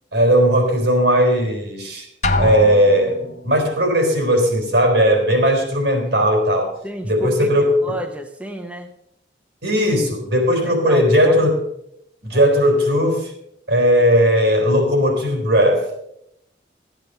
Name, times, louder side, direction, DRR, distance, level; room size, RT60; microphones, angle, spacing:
voice 1, 0.1-2.1 2.4-6.8 7.0-7.8 9.6-11.6 12.2-13.3 13.7-15.9, equal, 80° right, 3 dB, 4.0 m, -17 dB
Drum, 2.2-3.4, left 2 dB, 40° left, 0.8 m, -23 dB
voice 2, 6.8-7.5 7.8-8.9 10.5-11.5 12.3-12.5, right 1 dB, 5° right, 3 dB, 0.8 m, -32 dB
14.5 x 9.1 x 5.6 m, 0.79 s
head